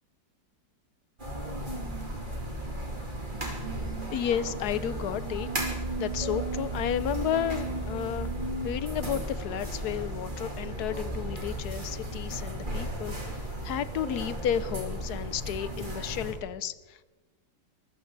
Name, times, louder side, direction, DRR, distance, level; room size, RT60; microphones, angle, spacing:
sound 1, 1.2-16.3, right 1 dB, 25° right, 3.2 m, -34 dB
voice 1, 4.1-5.5 6.0-8.3 8.6-17.0, left 9 dB, 70° left, 15 dB, 1.1 m, -32 dB
23.0 x 14.0 x 4.0 m, 1.2 s
omnidirectional pair, 2.0 m